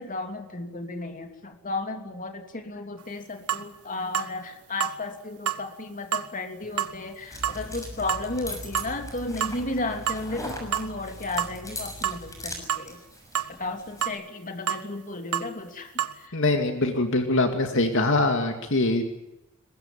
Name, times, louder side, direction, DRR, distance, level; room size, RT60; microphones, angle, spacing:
voice 1, 0.0-13.0 13.5-16.4, left 2 dB, 35° left, 5 dB, 3.0 m, -34 dB
sound 1, 3.0-3.1 3.5-3.7 4.1-4.3 4.8-5.0 5.5-5.6 6.1-6.3 6.8-6.9 7.4-7.6 8.1-8.3 8.7-8.9 9.4-9.6 10.1-10.2 10.7-10.9 11.4-11.6 12.0-12.2 12.7-12.9 13.3-13.5 14.0-14.2 14.7-14.8 15.3-15.5 16.0-16.2, right 10 dB, 90° right, 1.5 m, -28 dB
sound 2, 6.6-14.1, left 1 dB, 15° left, 6.5 m, -41 dB
sound 3, 7.3-12.7, equal, 50° right, 3.4 m, -43 dB
voice 2, 16.3-19.0, left 2 dB, 60° left, 5 dB, 2.4 m, -23 dB
23.0 x 21.5 x 9.1 m, 0.92 s
head